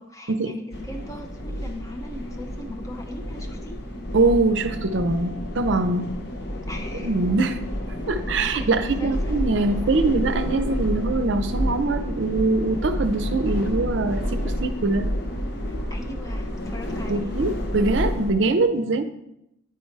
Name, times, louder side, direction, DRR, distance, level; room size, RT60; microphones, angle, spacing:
voice 1, 0.0-3.8 6.7-7.1 7.9-9.9 15.7-17.5, left 1 dB, 15° left, 3 dB, 0.8 m, -39 dB
sound 1, 0.7-18.3, equal, 50° left, 0.9 m, -29 dB
voice 2, 4.1-6.1 6.9-7.6 8.1-15.1 17.1-19.0, right 3 dB, 60° right, 10 dB, 0.5 m, -23 dB
9.2 x 4.4 x 4.6 m, 0.82 s
head